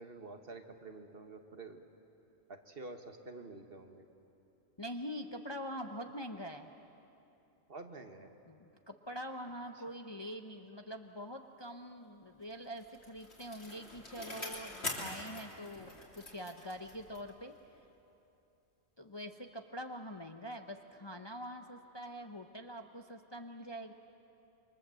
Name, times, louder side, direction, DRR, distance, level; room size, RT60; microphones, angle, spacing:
voice 1, 0.0-1.8 2.5-4.0 7.7-8.3, right 3 dB, 50° right, 6 dB, 1.6 m, -48 dB
voice 2, 4.8-6.7 8.5-17.5 19.0-23.9, equal, 25° left, 5 dB, 0.8 m, -44 dB
Bicycle, 12.5-17.4 17.8-17.9, left 2 dB, 55° left, 3.6 m, -44 dB
28.5 x 23.5 x 7.6 m, 2.8 s
omnidirectional pair, 1.3 m